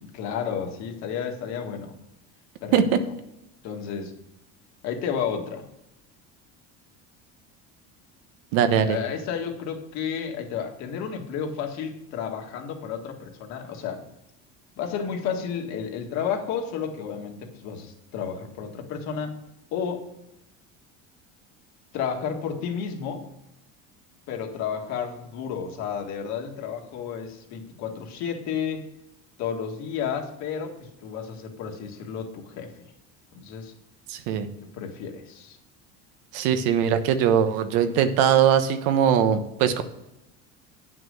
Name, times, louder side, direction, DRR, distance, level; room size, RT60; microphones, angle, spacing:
voice 1, 0.0-1.9 2.6-2.7 3.0-3.1 3.6-4.1 4.8-5.6 8.8-14.0 14.8-19.4 19.7-20.1 21.9-23.2 24.3-28.9 29.4-32.8 33.3-33.7 34.6-35.6, left 7 dB, 60° left, 3 dB, 1.8 m, -32 dB
voice 2, 8.5-9.0 34.1-34.5 36.3-39.8, right 8 dB, 80° right, 9 dB, 1.2 m, -21 dB
9.2 x 6.1 x 6.5 m, 0.88 s
cardioid pair, 170°, 32 cm